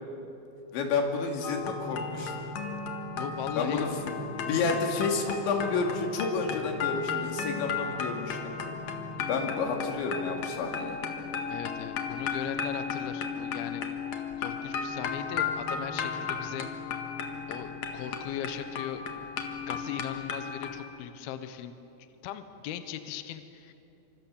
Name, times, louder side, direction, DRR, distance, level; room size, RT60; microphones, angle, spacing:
voice 1, 0.7-2.4 3.6-4.1 4.4-8.6 9.3-11.0, left 4 dB, 90° left, 3 dB, 4.7 m, -30 dB
sound 1, 1.4-20.8, left 5 dB, 55° left, 2.3 m, -35 dB
voice 2, 3.1-3.9 4.6-5.0 11.5-13.9 14.4-17.0 17.5-19.2 19.7-21.8 22.2-23.7, left 10 dB, 70° left, 9 dB, 2.7 m, -39 dB
26.5 x 25.5 x 7.3 m, 2.9 s
omnidirectional pair, 5.1 m